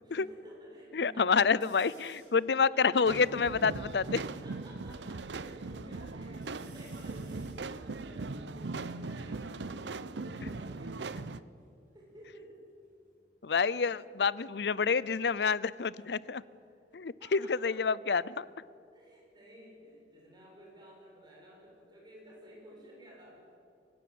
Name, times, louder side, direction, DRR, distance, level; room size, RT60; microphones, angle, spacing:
voice 1, 0.0-2.0 2.7-2.9 4.1-11.2 11.9-12.6 13.6-13.9 16.6-17.8 18.9-23.4, equal, 25° right, -2 dB, 7.7 m, -53 dB
voice 2, 0.9-4.0 13.4-16.4 16.9-18.4, left 5 dB, 65° left, 20 dB, 0.6 m, -28 dB
sound 1, 1.6-2.4 3.0-3.1 3.3-4.8 5.3-5.9 6.3-9.7 10.6-12.6 12.8-13.3 14.9-17.5 17.9-18.7, right 4 dB, 50° right, 6.6 m, -65 dB
sound 2, 3.0-11.4, right 3 dB, 80° right, 0.7 m, -39 dB
24.0 x 15.5 x 9.4 m, 2.4 s
head